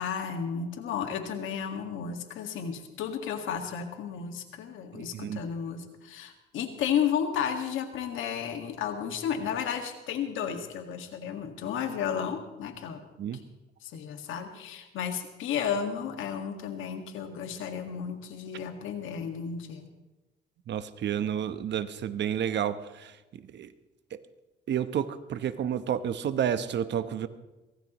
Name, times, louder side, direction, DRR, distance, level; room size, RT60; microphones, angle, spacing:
voice 1, 0.0-13.0 13.8-19.9, left 8 dB, 85° left, 5 dB, 1.9 m, -33 dB
voice 2, 4.9-5.4 13.2-13.4 20.7-23.7 24.7-27.3, right 9 dB, 65° right, 12 dB, 1.0 m, -30 dB
23.0 x 16.5 x 3.1 m, 1.1 s
cardioid pair, 90°, 20 cm